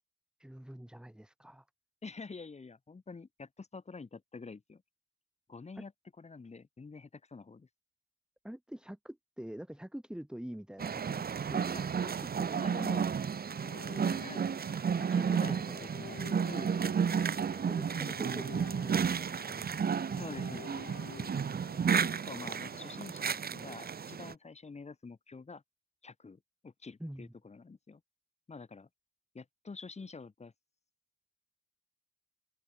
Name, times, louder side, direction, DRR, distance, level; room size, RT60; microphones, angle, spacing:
voice 1, 0.4-1.6 5.8-5.9 8.4-12.1 12.4-12.9 15.0-15.4 15.7-15.8 17.7-20.0 27.0-27.3, equal, 5° right, 4.5 m, -46 dB
voice 2, 2.0-4.8 5.5-5.9 6.2-7.7 11.7-11.8 12.6-13.1 14.2-14.5 15.1-17.2 20.1-20.9 22.0-25.6 26.0-28.0 28.5-28.9 29.3-30.5, left 4 dB, 35° left, 4.5 m, -47 dB
sound 1, 10.8-24.3, right 7 dB, 50° right, 2.5 m, -32 dB
sound 2, 13.1-23.3, left 12 dB, 80° left, 2.5 m, -52 dB
open air
supercardioid pair, 65°, 20 cm